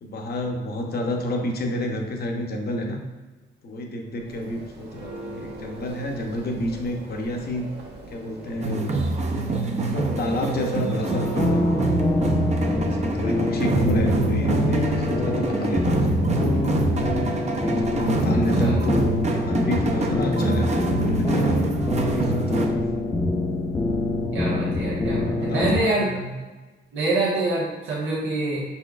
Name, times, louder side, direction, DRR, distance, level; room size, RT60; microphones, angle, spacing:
voice 1, 0.0-3.0 3.6-7.7 8.1-8.9 9.8-11.7 12.7-16.3 17.5-21.6 22.0-22.9 25.3-26.4, left 1 dB, 50° left, 2 dB, 0.9 m, -29 dB
Church bell, 4.1-18.3, right 1 dB, 60° right, 1.2 m, -40 dB
sound 1, 8.6-22.7, right 3 dB, 35° right, 0.6 m, -25 dB
sound 2, 11.1-25.8, left 2 dB, 20° left, 0.6 m, -25 dB
voice 2, 24.3-26.1 26.9-28.6, right 2 dB, 85° right, -7 dB, 1.2 m, -25 dB
5.0 x 4.3 x 2.4 m, 1.2 s
cardioid pair, 90°, 20 cm